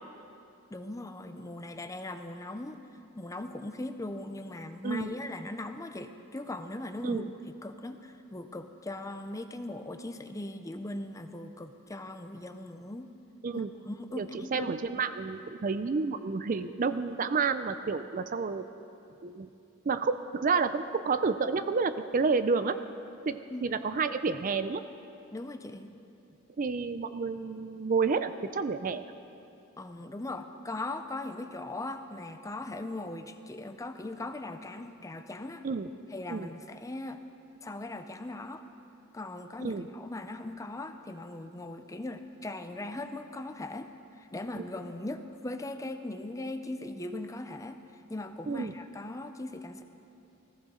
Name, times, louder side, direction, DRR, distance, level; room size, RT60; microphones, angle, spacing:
voice 1, 0.7-2.8 3.2-7.3 7.6-13.1 13.5-14.7 23.5-23.7 25.3-25.9 29.8-35.6 36.1-37.2 37.6-38.6 39.1-43.9 44.2-47.8 48.1-49.8, left 2 dB, 15° left, 8 dB, 0.5 m, -39 dB
voice 2, 14.2-18.6 19.2-19.5 19.9-22.8 23.3-24.8 26.6-29.0 35.6-35.9 36.3-36.5 39.6-39.9 44.6-44.7 48.5-48.7, right 4 dB, 40° right, 11 dB, 0.4 m, -30 dB
19.5 x 15.0 x 3.8 m, 2.7 s
head